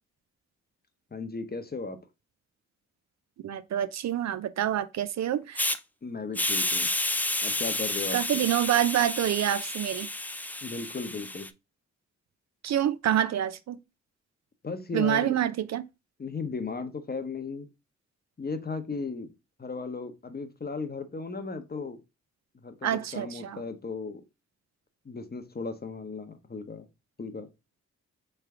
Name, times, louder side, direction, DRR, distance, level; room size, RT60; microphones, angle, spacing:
voice 1, 1.1-2.0 6.0-6.9 7.4-8.4 10.6-11.5 14.6-15.4 16.2-17.7 18.4-19.3 19.6-22.0 22.6-24.2 25.0-26.9 27.2-27.5, left 4 dB, 30° left, 0.8 m, -36 dB
voice 2, 3.4-5.7 8.1-10.1 12.6-13.8 14.9-15.8 22.8-23.6, right 11 dB, 60° right, 0.4 m, -27 dB
Hiss, 5.6-5.8 6.3-11.5, left 1 dB, 5° left, 0.3 m, -30 dB
3.3 x 3.3 x 3.4 m
supercardioid pair, 45°, 32 cm